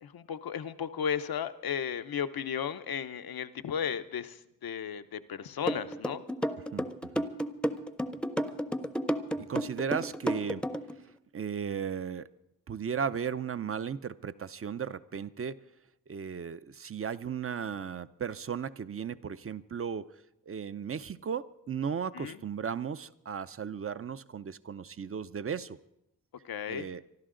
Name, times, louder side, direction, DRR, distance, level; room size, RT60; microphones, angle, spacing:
voice 1, 0.0-6.2 22.1-22.4 26.4-26.9, left 8 dB, 85° left, 10 dB, 0.8 m, -35 dB
sound 1, 5.7-10.9, equal, 5° left, 0.6 m, -31 dB
voice 2, 6.7-7.3 9.4-10.7 11.3-12.3 12.7-15.6 16.1-20.1 20.5-25.8 26.7-27.0, right 7 dB, 40° right, 14 dB, 0.5 m, -36 dB
25.5 x 12.0 x 3.8 m, 0.86 s
wide cardioid pair, 90°, 35 cm